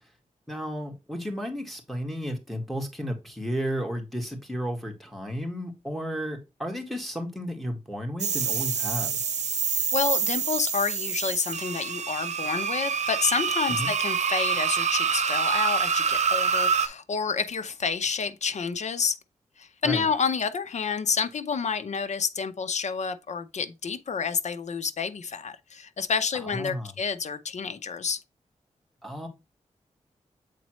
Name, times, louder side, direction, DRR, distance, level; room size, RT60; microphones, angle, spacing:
voice 1, 0.5-9.2 13.7-13.9 19.8-20.1 26.3-26.9 29.0-29.3, equal, ahead, 2.1 m, -33 dB
sound 1, 8.2-16.9, right 6 dB, 65° right, 0.8 m, -26 dB
voice 2, 9.7-19.2 19.6-28.2, left 6 dB, 65° left, 0.8 m, -29 dB
7.6 x 4.1 x 3.1 m
wide cardioid pair, 85°, 12 cm